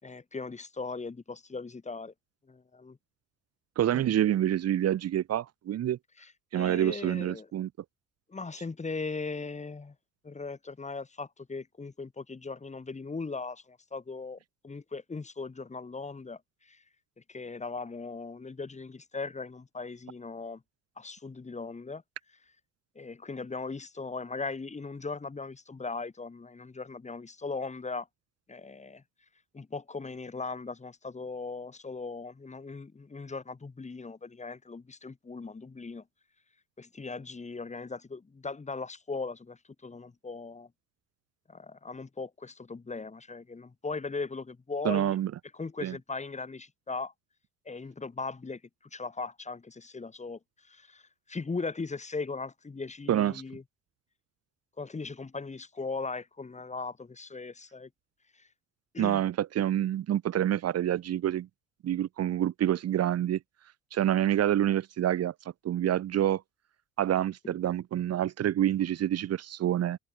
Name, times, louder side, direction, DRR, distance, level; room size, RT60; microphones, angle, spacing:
voice 1, 0.0-2.1 2.5-3.0 3.9-4.2 6.2-7.5 8.3-9.9 10.2-14.4 14.6-16.8 17.3-20.6 21.0-22.0 22.9-28.1 28.5-29.0 29.5-36.0 36.8-40.7 41.5-45.1 45.5-47.1 47.6-48.6 48.9-53.6 54.8-57.9 58.3-58.5 58.9-59.2, left 4 dB, 20° left, 4.4 m, -39 dB
voice 2, 3.8-6.0 6.5-7.7 44.8-45.3 45.8-45.9 53.1-53.4 59.0-61.5 61.8-63.4 63.9-65.3 65.6-66.4 67.0-70.0, right 11 dB, 45° right, 2.6 m, -27 dB
figure-of-eight pair, 60°, 35 cm